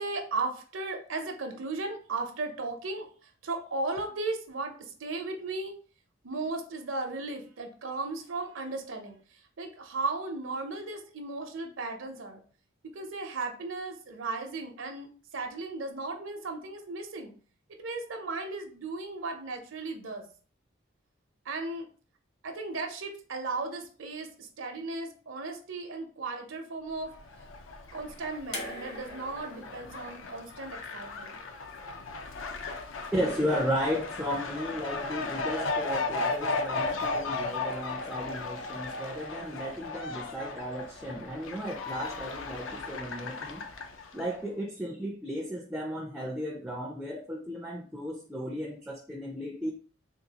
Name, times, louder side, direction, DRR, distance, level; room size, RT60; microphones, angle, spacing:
voice 1, 0.0-5.8 6.2-9.2 9.6-12.4 12.9-17.3 17.7-20.2 21.4-21.9 22.4-27.1 27.9-31.4, right 3 dB, 80° right, 4 dB, 0.7 m, -36 dB
Fowl, 27.0-44.4, left 3 dB, 75° left, 0.5 m, -36 dB
sound 1, 28.5-31.7 32.9-33.0, left 1 dB, 55° left, 1.0 m, -43 dB
voice 2, 33.1-43.6 44.1-49.7, equal, 5° right, -1 dB, 0.3 m, -34 dB
3.8 x 2.3 x 2.8 m, 0.41 s
head